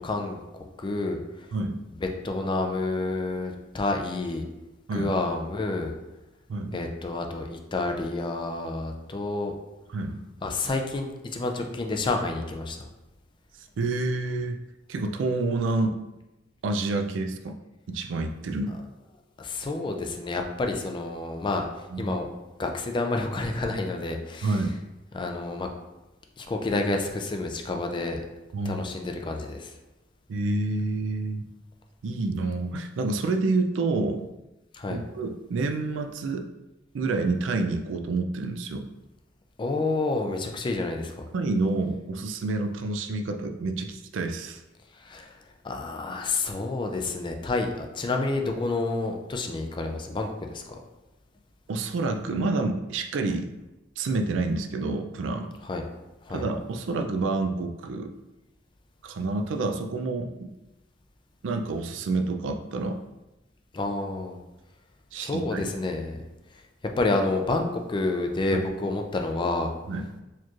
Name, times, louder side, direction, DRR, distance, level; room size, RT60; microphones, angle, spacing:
voice 1, 0.0-1.5 2.0-4.5 4.9-5.9 6.7-9.5 10.4-12.9 19.4-21.6 22.0-24.6 25.1-25.7 26.4-28.2 28.7-29.7 34.7-35.0 39.6-41.3 45.0-45.4 45.6-50.7 55.6-55.8 56.2-56.5 63.7-64.4 65.2-66.2 67.0-69.7, left 2 dB, 25° left, 3 dB, 0.4 m, -29 dB
voice 2, 1.5-1.8 4.9-5.1 6.5-6.8 9.9-10.2 13.8-14.6 14.9-16.0 16.6-17.6 17.9-18.8 21.9-22.2 24.4-24.8 28.5-28.9 30.3-31.4 32.0-34.3 34.9-36.5 36.9-38.9 41.3-44.6 51.7-53.5 54.0-55.5 56.3-58.1 59.0-60.5 61.4-63.0 65.1-65.7 68.5-68.7 69.9-70.1, right 3 dB, 85° right, 5 dB, 0.4 m, -28 dB
4.4 x 3.0 x 2.4 m, 1.0 s
head